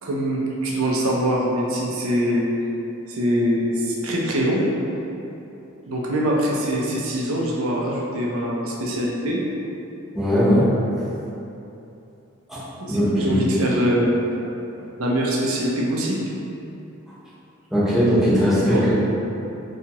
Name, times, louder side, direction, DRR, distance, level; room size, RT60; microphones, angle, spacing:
voice 1, 0.0-2.5 3.1-4.7 5.9-9.4 12.8-14.4 14.8-16.3 18.7-18.8, equal, 65° right, -3 dB, 0.5 m, -23 dB
voice 2, 10.1-10.7 12.5-13.4 17.7-18.9, equal, ahead, -13 dB, 0.7 m, -19 dB
2.7 x 2.3 x 2.8 m, 2.9 s
head